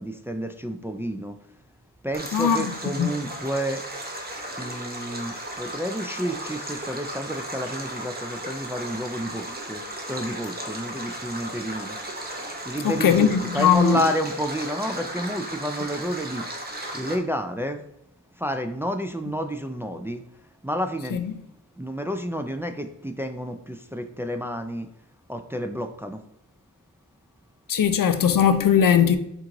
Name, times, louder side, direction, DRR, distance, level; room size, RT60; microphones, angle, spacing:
voice 1, 0.0-1.4 2.0-3.8 4.6-12.0 12.7-16.4 16.9-17.8 18.4-20.2 20.6-21.2 21.8-24.9 25.3-26.2, equal, 10° right, 0.3 m, -30 dB
Stream, 2.1-17.1, right 1 dB, 30° right, 0.9 m, -35 dB
voice 2, 2.3-2.6 3.0-3.1 12.8-14.0 21.1-21.2 27.7-29.2, left 8 dB, 80° left, 0.5 m, -19 dB
4.5 x 2.5 x 3.7 m
wide cardioid pair, 60°, 33 cm